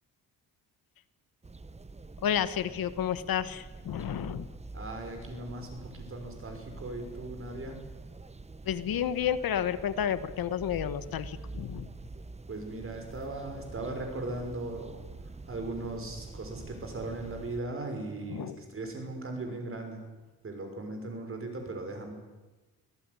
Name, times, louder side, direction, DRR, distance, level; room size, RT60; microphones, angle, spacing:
sound 1, 1.4-17.6, right 3 dB, 20° right, 1.1 m, -46 dB
voice 1, 2.2-4.5 8.6-11.9 18.3-18.6, left 9 dB, 70° left, 13 dB, 1.3 m, -31 dB
voice 2, 4.7-7.8 12.5-15.0 15.5-20.0 20.4-22.1, right 2 dB, 35° right, 4 dB, 6.1 m, -38 dB
26.5 x 17.0 x 9.9 m, 1.2 s
wide cardioid pair, 145°, 36 cm